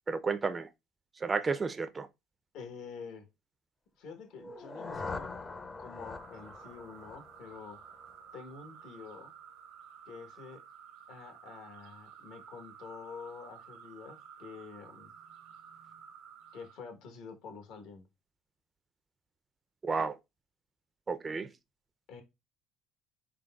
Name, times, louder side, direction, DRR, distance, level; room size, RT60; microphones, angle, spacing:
voice 1, 0.1-0.7 1.2-2.1 19.8-20.2 21.1-21.5, right 4 dB, 25° right, 0.4 m, -32 dB
voice 2, 2.5-3.3 4.0-5.3 5.8-7.8 8.3-9.3 10.1-10.6 11.1-15.1 16.5-18.1 22.1-22.2, left 5 dB, 70° left, 1.0 m, -47 dB
sound 1, 4.3-8.3, left 3 dB, 25° left, 0.5 m, -43 dB
sound 2, 5.9-16.8, right 8 dB, 85° right, 0.8 m, -53 dB
3.8 x 3.4 x 2.2 m
supercardioid pair, 95°, 0 cm